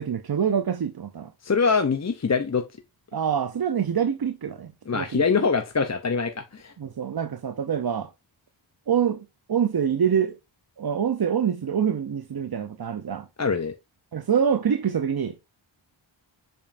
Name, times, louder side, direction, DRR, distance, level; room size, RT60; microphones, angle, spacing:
voice 1, 0.0-1.3 3.1-5.5 6.8-8.1 8.9-10.4 10.8-13.3 14.1-15.4, right 8 dB, 50° right, 0.7 m, -26 dB
voice 2, 1.4-2.6 4.9-6.7 13.4-13.7, left 5 dB, 35° left, 0.7 m, -24 dB
7.0 x 5.3 x 2.6 m
wide cardioid pair, 60°, 49 cm